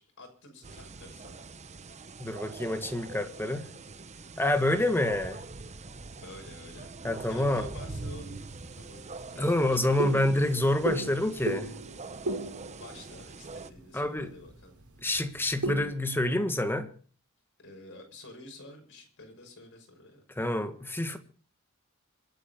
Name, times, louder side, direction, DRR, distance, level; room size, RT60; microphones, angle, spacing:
voice 1, 0.0-1.5 2.5-2.7 6.1-7.0 7.2-8.5 8.7-9.4 9.8-10.2 12.8-14.8 17.6-20.2, left 2 dB, 60° left, 6.3 m, -50 dB
sound 1, 0.6-13.7, right 3 dB, 30° right, 0.9 m, -43 dB
voice 2, 2.2-3.6 4.4-5.4 7.0-7.7 9.4-11.7 13.9-14.3 15.0-16.9 20.4-21.2, left 1 dB, 10° left, 1.7 m, -27 dB
sound 2, 8.1-16.0, right 2 dB, 80° right, 4.3 m, -38 dB
26.5 x 9.1 x 5.3 m
head